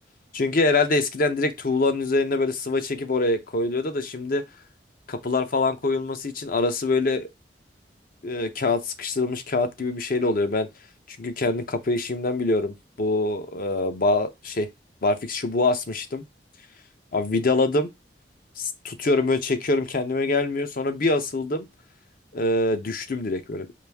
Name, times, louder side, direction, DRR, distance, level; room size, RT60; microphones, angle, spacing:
voice 1, 0.3-4.4 5.1-7.3 8.2-10.7 11.2-14.7 15.0-16.2 17.1-17.9 18.6-21.7 22.3-23.7, left 2 dB, 55° left, 0.6 m, -24 dB
4.9 x 2.5 x 3.4 m
head